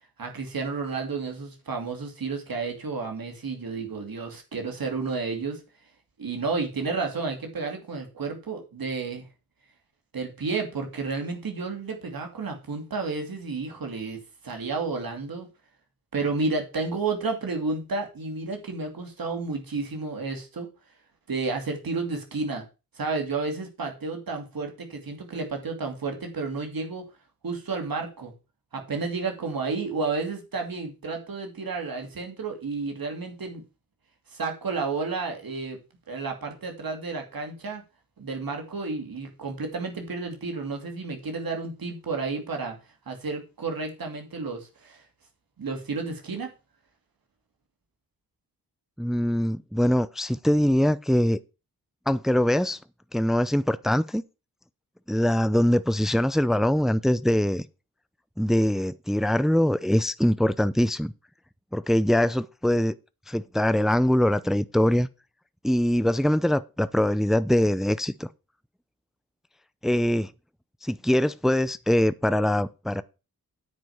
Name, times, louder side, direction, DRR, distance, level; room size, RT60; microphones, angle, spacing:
voice 1, 0.2-5.6 6.2-9.3 10.1-15.5 16.1-20.7 21.3-22.6 23.0-27.1 27.4-28.3 28.7-33.6 34.3-35.8 36.1-37.8 38.2-42.7 43.1-45.0 45.6-46.5, right 4 dB, 75° right, 2.7 m, -31 dB
voice 2, 49.0-51.4 52.1-52.8 53.1-54.2 55.1-57.7 58.4-61.1 61.7-62.9 63.3-65.1 65.6-68.3 69.8-70.3 70.8-73.0, left 1 dB, ahead, 0.5 m, -23 dB
9.5 x 5.1 x 7.2 m
cardioid pair, 55°, 35 cm